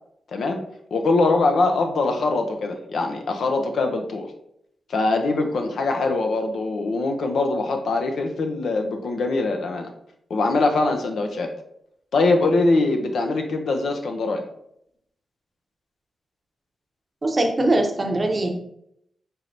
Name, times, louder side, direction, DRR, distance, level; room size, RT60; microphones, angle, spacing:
voice 1, 0.3-0.6 0.9-4.3 4.9-9.9 10.3-11.5 12.1-14.4, left 3 dB, 75° left, 4 dB, 0.6 m, -22 dB
voice 2, 17.2-18.5, right 2 dB, 35° right, 3 dB, 0.7 m, -21 dB
4.4 x 3.2 x 2.6 m, 0.73 s
cardioid pair, 95°, 0 cm